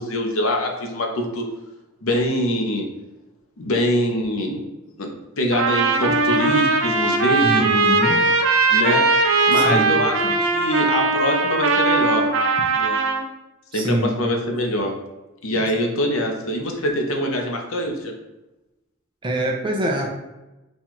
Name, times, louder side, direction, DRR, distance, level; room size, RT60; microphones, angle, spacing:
voice 1, 0.0-1.4 2.0-2.9 3.6-4.6 5.0-5.1 5.4-7.9 8.7-9.0 9.5-12.3 12.7-13.0 13.7-14.9 15.4-18.1, left 1 dB, 75° left, 2 dB, 0.8 m, -24 dB
Trumpet, 5.5-13.2, right 3 dB, 70° right, 0.6 m, -19 dB
voice 2, 7.4-8.2 9.5-9.9 10.2-10.3 13.7-14.2 19.2-20.1, right 1 dB, 25° right, 1 dB, 0.5 m, -24 dB
4.3 x 2.4 x 4.4 m, 1.0 s
head